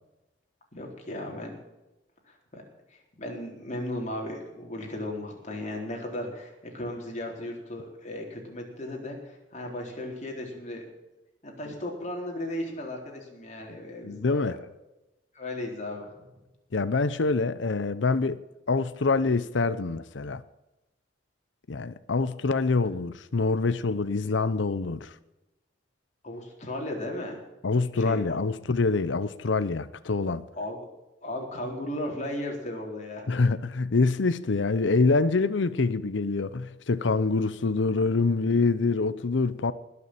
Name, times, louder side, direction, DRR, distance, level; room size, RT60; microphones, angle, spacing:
voice 1, 0.7-1.6 2.3-2.6 2.9-10.8 11.4-14.6 15.3-16.1 26.2-27.4 28.0-28.4 30.5-30.8 31.2-33.5, left 1 dB, 40° left, 4.0 m, -36 dB
voice 2, 14.0-14.7 16.7-18.4 18.7-20.4 21.7-25.1 27.6-30.4 33.3-39.7, left 3 dB, 85° left, 0.7 m, -25 dB
20.0 x 6.9 x 8.7 m
head